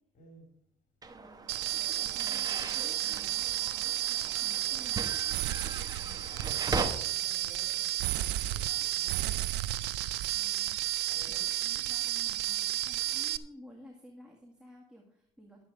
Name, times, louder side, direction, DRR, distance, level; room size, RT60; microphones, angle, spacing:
voice 1, 0.1-0.5 5.7-9.5 11.1-11.5, equal, 55° left, 2 dB, 3.8 m, -55 dB
sound 1, 1.0-6.9, right 3 dB, 20° right, 1.1 m, -39 dB
voice 2, 1.1-5.0 10.3-10.8 11.3-15.6, equal, 5° right, -1 dB, 1.9 m, -54 dB
sound 2, 1.5-13.4, right 15 dB, 90° right, 0.6 m, -32 dB
11.5 x 8.1 x 4.8 m, 0.73 s
cardioid pair, 110°, 17 cm